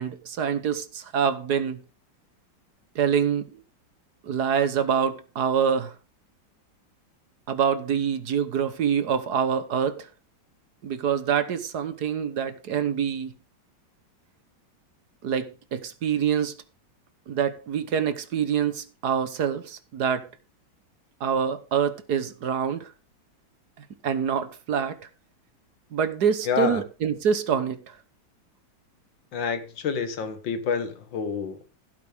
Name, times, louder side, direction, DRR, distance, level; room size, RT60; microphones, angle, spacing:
voice 1, 0.0-1.8 3.0-3.5 4.2-5.9 7.5-10.1 10.8-13.3 15.2-16.6 17.3-20.3 21.2-22.9 24.0-25.0 25.9-27.9, right 7 dB, 60° right, 1.6 m, -26 dB
voice 2, 26.5-26.8 29.3-31.6, left 6 dB, 80° left, 2.2 m, -28 dB
16.0 x 8.4 x 3.5 m
omnidirectional pair, 2.0 m